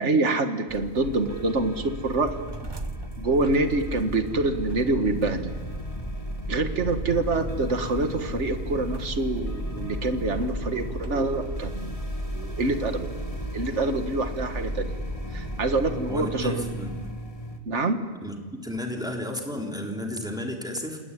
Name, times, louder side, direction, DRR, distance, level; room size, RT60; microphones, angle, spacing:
voice 1, 0.0-2.3 3.2-5.5 6.5-12.0 12.3-13.1 13.5-15.0 15.3-16.7 17.7-18.0, right 2 dB, 60° right, 7 dB, 2.0 m, -26 dB
sound 1, 0.7-17.1, right 3 dB, 25° right, 0.6 m, -40 dB
sound 2, 1.0-17.6, equal, 25° left, 2.0 m, -35 dB
voice 2, 16.1-17.0 18.2-18.3 18.6-21.0, left 1 dB, 5° right, 1 dB, 3.5 m, -32 dB
29.5 x 18.5 x 9.9 m, 1.4 s
omnidirectional pair, 1.4 m